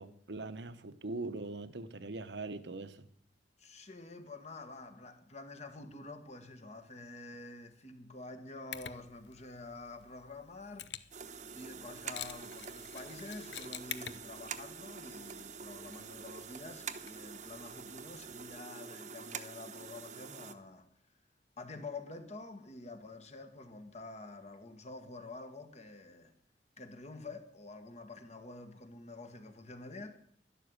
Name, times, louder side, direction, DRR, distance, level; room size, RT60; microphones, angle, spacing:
voice 1, 0.0-3.1, right 3 dB, 80° right, 1.1 m, -41 dB
voice 2, 3.6-11.0 11.5-20.9 21.6-26.3 26.8-30.2, left 2 dB, 40° left, 1.8 m, -48 dB
Mechanisms, 8.7-18.6, left 10 dB, 85° left, 0.8 m, -50 dB
sound 1, 11.1-20.5, right 6 dB, 45° right, 1.0 m, -46 dB
12.0 x 11.5 x 8.0 m
head